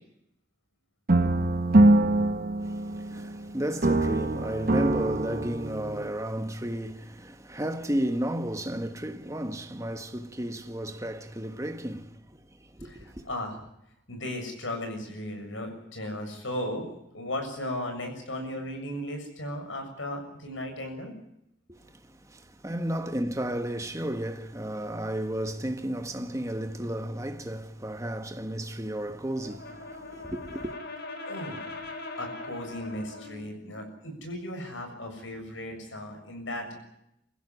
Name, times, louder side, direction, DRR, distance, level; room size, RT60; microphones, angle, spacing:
sound 1, 1.1-3.4 3.8-6.1, right 2 dB, 50° right, 1.1 m, -23 dB
voice 1, 2.6-13.3 21.7-30.7, right 1 dB, 15° right, 1.5 m, -33 dB
voice 2, 12.8-13.5 14.1-16.9 17.1-21.1 31.2-31.6 32.2-36.7, left 1 dB, 75° left, 7.1 m, -36 dB
Brass instrument, 29.3-33.5, left 2 dB, 55° left, 4.1 m, -40 dB
24.5 x 16.0 x 9.8 m
head